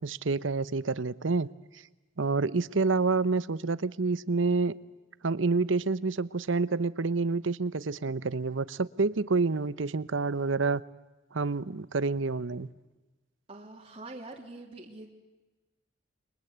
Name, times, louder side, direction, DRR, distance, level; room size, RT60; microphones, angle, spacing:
voice 1, 0.0-1.5 2.2-4.7 5.2-10.8 11.3-12.7, right 3 dB, 70° right, 0.9 m, -28 dB
voice 2, 13.5-15.1, right 2 dB, 30° right, 3.1 m, -44 dB
30.0 x 23.5 x 8.1 m
head